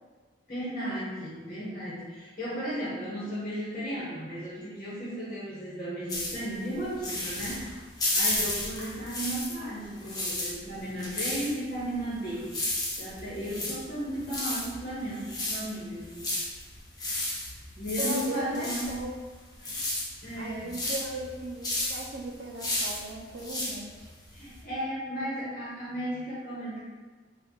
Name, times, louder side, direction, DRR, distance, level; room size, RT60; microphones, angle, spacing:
voice 1, 0.5-7.7 8.1-12.6 13.0-16.3 17.7-18.9 20.2-20.8 24.3-26.8, equal, 35° left, -8 dB, 1.2 m, -35 dB
sound 1, 6.1-9.7 10.0-24.6, left 1 dB, 20° left, 0.8 m, -33 dB
voice 2, 18.0-19.1 20.4-24.1, right 1 dB, 60° right, 1 dB, 0.6 m, -37 dB
4.1 x 2.5 x 4.6 m, 1.4 s
head